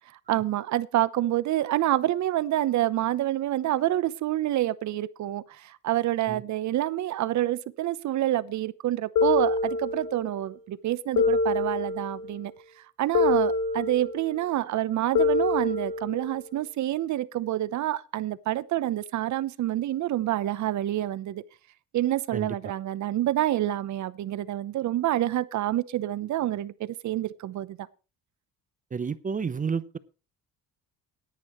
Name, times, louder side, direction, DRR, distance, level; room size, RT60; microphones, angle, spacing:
voice 1, 0.3-12.5 13.0-21.4 21.9-27.9, right 14 dB, 60° right, 0.9 m, -27 dB
sound 1, 9.2-10.3 11.2-12.3 13.1-14.3 15.1-16.3, left 3 dB, 65° left, 2.5 m, -25 dB
voice 2, 22.3-22.7 28.9-30.0, right 5 dB, 25° right, 0.7 m, -31 dB
18.0 x 10.0 x 3.1 m
cardioid pair, 120°, 33 cm